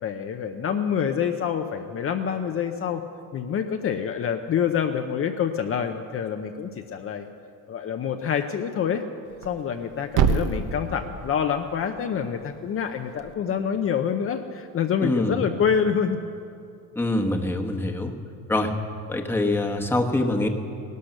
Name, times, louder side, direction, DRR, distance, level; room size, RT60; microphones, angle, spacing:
voice 1, 0.0-3.0 3.3-7.3 7.7-9.0 9.4-16.2, left 7 dB, 40° left, 5 dB, 0.7 m, -26 dB
Thump thud, 9.2-13.3, right 6 dB, 55° right, 1.0 m, -29 dB
voice 2, 15.0-15.4 16.9-18.1 18.5-18.7 19.1-20.5, left 2 dB, 5° left, 3 dB, 1.2 m, -24 dB
17.5 x 12.0 x 6.6 m, 2.5 s
cardioid pair, 130°, 36 cm